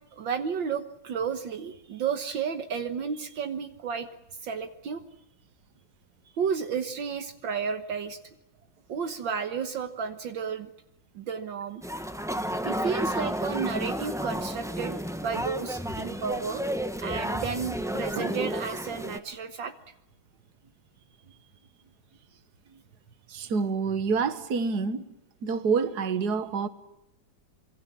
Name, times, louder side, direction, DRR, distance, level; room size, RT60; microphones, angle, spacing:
voice 1, 0.1-4.1 4.4-5.0 6.4-8.2 8.9-10.7 11.2-11.8 12.6-16.7 17.0-19.7, right 6 dB, 70° right, 1.9 m, -32 dB
sound 1, 11.8-19.2, equal, ahead, 1.1 m, -32 dB
voice 2, 23.3-25.1 25.4-26.7, right 5 dB, 55° right, 2.0 m, -27 dB
26.0 x 23.5 x 7.3 m
omnidirectional pair, 2.2 m